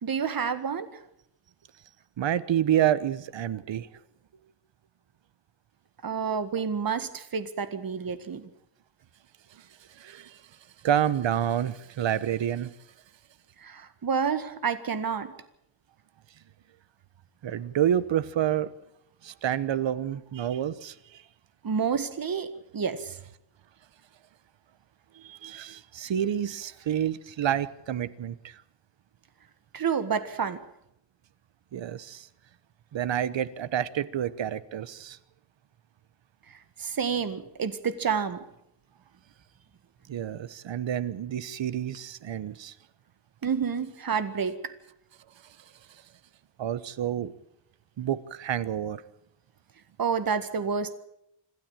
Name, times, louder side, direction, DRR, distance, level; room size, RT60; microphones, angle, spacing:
voice 1, 0.0-1.0 6.0-8.5 13.6-15.3 21.6-22.5 22.7-23.2 29.7-30.6 36.8-38.4 43.4-44.6 50.0-50.9, right 6 dB, 50° right, 11 dB, 1.8 m, -29 dB
voice 2, 2.2-3.9 10.0-10.4 10.8-12.7 17.4-18.7 19.2-21.2 25.2-28.6 31.7-32.3 32.9-35.2 40.1-42.7 46.6-47.3 48.0-49.0, right 10 dB, 75° right, 16 dB, 1.1 m, -28 dB
27.0 x 12.0 x 9.0 m, 0.80 s
wide cardioid pair, 145°, 45 cm